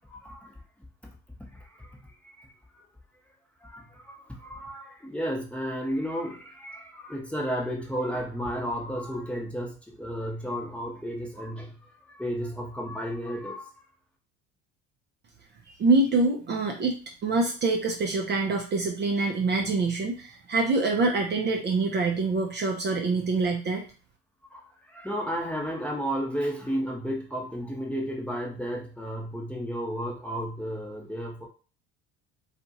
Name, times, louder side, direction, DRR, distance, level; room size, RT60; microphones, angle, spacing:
voice 1, 0.1-0.6 1.6-2.0 2.2-2.5 2.7-2.8 3.6-11.7 12.1-13.7 24.5-24.6 24.9-31.5, equal, 5° left, -1 dB, 0.8 m, -33 dB
voice 2, 15.7-23.8, right 3 dB, 30° right, 2 dB, 0.6 m, -25 dB
2.7 x 2.4 x 2.7 m, 0.36 s
hypercardioid pair, 75°, 34 cm